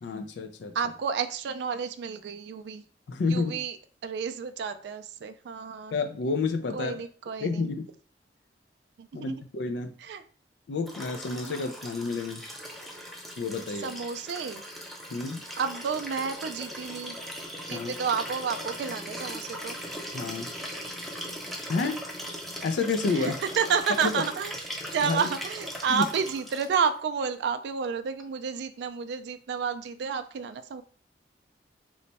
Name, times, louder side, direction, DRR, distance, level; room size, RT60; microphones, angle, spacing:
voice 1, 0.0-0.7 3.1-3.6 5.9-6.9 7.4-7.9 9.1-9.9 10.7-12.4 13.4-13.9 15.1-15.5 17.7-17.9 20.1-20.5 21.7-22.0 22.6-23.4 24.1-24.2 25.0-25.3 25.9-26.1, left 4 dB, 75° left, 6 dB, 0.4 m, -30 dB
voice 2, 0.7-2.8 3.3-3.8 4.0-6.0 6.7-7.7 9.0-9.4 10.0-10.2 11.4-11.7 13.8-14.6 15.6-17.2 17.7-19.8 23.1-24.5 24.9-30.8, right 6 dB, 70° right, 9 dB, 0.3 m, -30 dB
Liquid, 10.9-26.9 28.2-28.3, equal, ahead, 0.5 m, -39 dB
3.1 x 2.1 x 4.0 m, 0.44 s
head